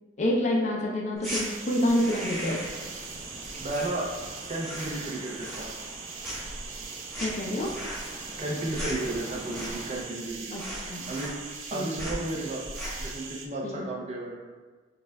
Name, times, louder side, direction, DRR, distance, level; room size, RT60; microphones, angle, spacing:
voice 1, 0.2-2.6 7.2-7.7 10.5-10.6 10.9-11.1 11.7-11.9 13.6-13.8, left 1 dB, 40° left, -1 dB, 0.4 m, -27 dB
sound 1, 1.2-1.4 1.9-2.8 3.1-4.3 4.5-5.0 5.3-6.0 6.2-10.0 10.3-10.4 10.6-11.7 12.0-12.2 12.6-13.1, equal, ahead, 1.1 m, -37 dB
sound 2, 1.2-13.5, right 5 dB, 90° right, 0.4 m, -41 dB
sound 3, 2.0-10.0, equal, 50° right, 1.1 m, -45 dB
voice 2, 3.6-4.2 4.5-5.7 8.4-10.6 11.1-11.3 11.7-12.6 13.0-14.4, right 2 dB, 35° right, -2 dB, 0.5 m, -33 dB
5.2 x 2.4 x 2.2 m, 1.4 s
head